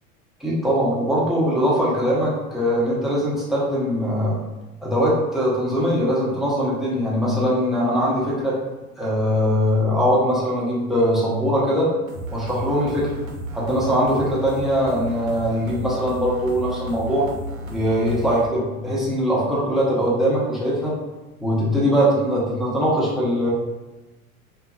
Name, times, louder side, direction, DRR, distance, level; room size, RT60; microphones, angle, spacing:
voice 1, 0.4-4.4 4.8-8.6 9.0-11.9 12.3-13.1 13.5-17.3 17.7-20.9 21.4-23.5, equal, ahead, -8 dB, 0.5 m, -21 dB
sound 1, 12.1-18.5, right 1 dB, 75° right, 0.6 m, -33 dB
2.6 x 2.5 x 2.3 m, 1.1 s
figure-of-eight pair, 75°, 42 cm